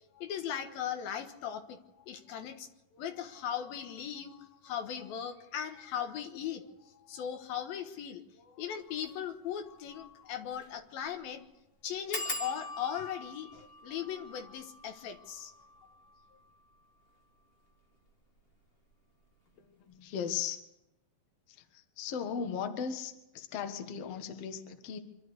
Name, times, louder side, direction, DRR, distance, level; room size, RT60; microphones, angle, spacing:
voice 1, 0.1-11.4 11.8-15.5, left 9 dB, 80° left, 6 dB, 3.2 m, -39 dB
sound 1, 8.9-9.1 9.6-9.7 9.9-10.0 10.5-10.8 11.0-11.1 12.1-17.4 18.1-18.6 18.9-19.3 19.5-19.6, left 2 dB, 40° left, 0.8 m, -43 dB
voice 2, 19.6-20.6 21.5-25.0, left 7 dB, 55° left, 6 dB, 2.1 m, -37 dB
25.5 x 12.5 x 8.1 m, 0.89 s
omnidirectional pair, 4.2 m